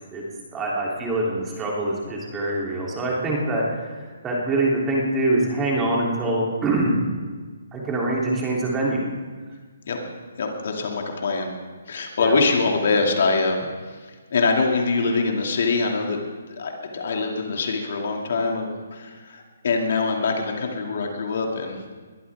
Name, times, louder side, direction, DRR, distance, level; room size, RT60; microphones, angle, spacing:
voice 1, 0.5-6.9 7.7-9.1 12.2-12.4, right 2 dB, 15° right, -4 dB, 3.2 m, -24 dB
voice 2, 10.4-11.5 11.9-13.6 14.3-16.2 16.5-21.8, left 4 dB, 60° left, 2 dB, 2.5 m, -24 dB
21.5 x 13.0 x 3.6 m, 1.5 s
hypercardioid pair, 155°, 0 cm